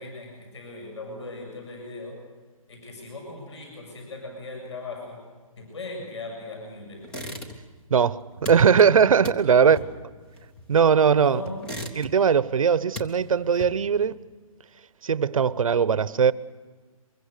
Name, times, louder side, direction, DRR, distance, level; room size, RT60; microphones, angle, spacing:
voice 1, 0.0-2.2 2.7-5.2 5.6-7.1 9.5-9.8 11.1-11.8, left 2 dB, 50° left, 7.2 m, -38 dB
sound 1, 7.0-7.8 8.1-11.0 11.4-12.4 12.7-14.0, left 1 dB, 5° left, 0.7 m, -38 dB
voice 2, 7.9-9.8 10.7-11.4 12.0-14.2 15.0-16.3, right 6 dB, 70° right, 0.9 m, -20 dB
24.0 x 22.0 x 6.7 m
hypercardioid pair, 175°, 18 cm